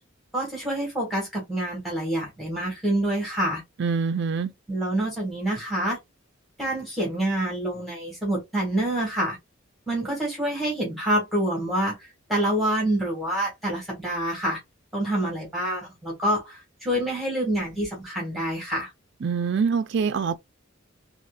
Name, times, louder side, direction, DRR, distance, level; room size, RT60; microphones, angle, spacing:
voice 1, 0.3-3.6 4.7-6.0 6.6-9.4 9.9-14.6 14.9-18.9, right 1 dB, ahead, 1.6 m, -27 dB
voice 2, 3.8-4.5 19.2-20.4, right 5 dB, 60° right, 0.4 m, -25 dB
4.1 x 2.9 x 2.4 m
head